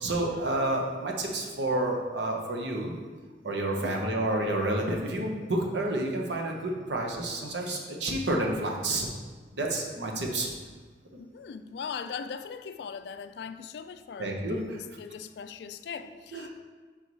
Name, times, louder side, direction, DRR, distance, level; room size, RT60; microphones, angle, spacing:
voice 1, 0.0-2.9 3.4-9.1 9.5-10.5 11.1-11.2 14.2-14.8 16.3-16.5, right 1 dB, 80° right, 0 dB, 0.9 m, -29 dB
voice 2, 11.1-14.4 14.7-16.6, left 6 dB, 65° left, 11 dB, 0.3 m, -40 dB
5.5 x 4.6 x 4.1 m, 1.4 s
head